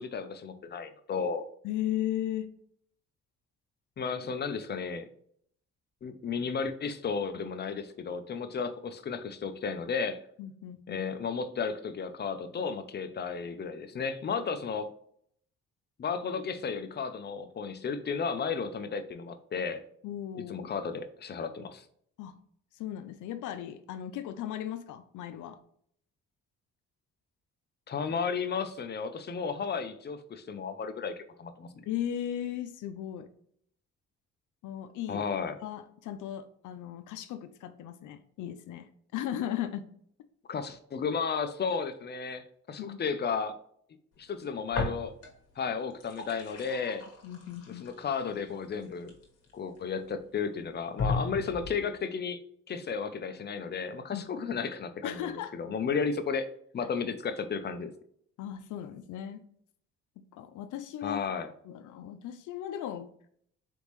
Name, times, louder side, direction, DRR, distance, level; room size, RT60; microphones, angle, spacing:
voice 1, 0.0-1.4 4.0-5.1 6.0-10.2 10.9-14.9 16.0-19.8 20.3-21.8 27.9-31.9 35.1-35.6 40.5-43.6 44.2-45.1 45.6-47.1 47.8-49.1 49.5-52.4 52.7-56.5 56.7-57.9 61.0-61.5, left 5 dB, 35° left, 9 dB, 0.6 m, -33 dB
voice 2, 1.6-2.5 10.4-11.1 20.0-20.7 22.2-22.4 22.7-25.6 31.9-33.3 34.6-35.3 35.6-39.9 42.8-43.0 47.2-47.9 54.1-54.3 55.0-55.5 56.8-56.9 58.4-59.4 60.2-61.2 61.6-63.1, left 11 dB, 80° left, 10 dB, 0.5 m, -37 dB
sound 1, 44.7-45.5 45.8-49.8 50.4-50.5 51.0-51.9, left 3 dB, 55° left, 1.4 m, -36 dB
4.1 x 3.5 x 3.1 m, 0.64 s
cardioid pair, 90°, 30 cm